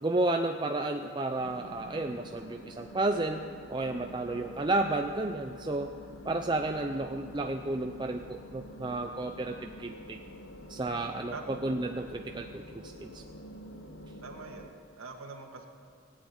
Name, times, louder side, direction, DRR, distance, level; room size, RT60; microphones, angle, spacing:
voice 1, 0.0-3.4 3.7-5.9 6.2-10.2 10.7-13.2, right 2 dB, 20° right, 4 dB, 0.5 m, -32 dB
sound 1, 1.4-14.7, equal, 60° left, 1.4 m, -47 dB
voice 2, 11.3-11.6 14.2-15.7, right 4 dB, 90° right, 2 dB, 1.7 m, -44 dB
16.5 x 8.5 x 9.6 m, 2.2 s
head